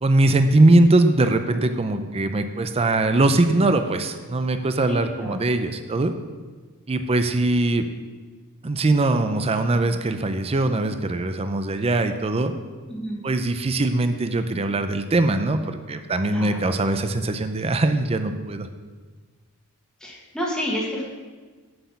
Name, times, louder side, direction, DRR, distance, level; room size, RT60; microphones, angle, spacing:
voice 1, 0.0-6.1 6.9-7.9 8.6-12.5 13.2-18.7, right 2 dB, 25° right, 8 dB, 0.5 m, -21 dB
voice 2, 4.9-5.4 12.9-13.2 16.3-16.6 20.0-21.0, equal, 5° left, -5 dB, 1.4 m, -30 dB
7.8 x 6.4 x 6.9 m, 1.4 s
head